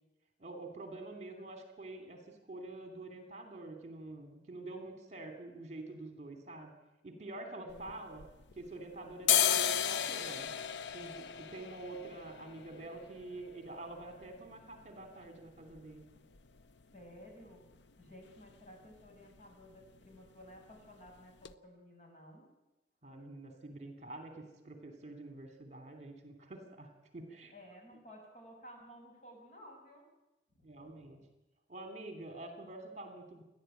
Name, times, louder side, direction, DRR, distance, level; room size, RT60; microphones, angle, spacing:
voice 1, 0.4-6.7 7.0-8.2 8.6-10.5 10.9-16.0 23.0-27.5 30.6-31.2 31.7-33.4, right 2 dB, 40° right, 6 dB, 3.0 m, -47 dB
voice 2, 7.6-8.0 16.9-17.6 18.0-22.5 27.5-30.0 30.5-31.2, equal, 40° left, 1 dB, 6.6 m, -55 dB
sound 1, 7.7-8.8 9.1-16.8 17.1-17.2 17.5-18.1 18.4-18.6 18.8-19.1 19.4-20.1 20.4-20.6 21.1-21.2 21.4-21.5, left 9 dB, 80° left, 0.7 m, -35 dB
29.0 x 11.5 x 9.2 m, 0.98 s
head